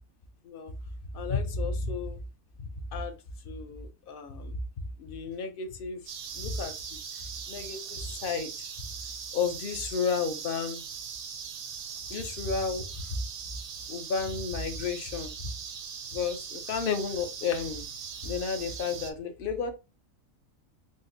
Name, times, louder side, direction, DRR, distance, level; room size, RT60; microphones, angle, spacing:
voice 1, 1.1-2.2 2.6-3.2 3.4-4.6 5.0-6.0 6.3-7.0 7.5-8.7 9.3-10.8 12.1-13.2 13.9-15.5 16.1-17.8 18.2-19.7, left 5 dB, 55° left, 6 dB, 0.7 m, -32 dB
sound 1, 6.1-19.1, right 7 dB, 65° right, 0.8 m, -40 dB
4.9 x 2.0 x 2.6 m, 0.28 s
omnidirectional pair, 1.4 m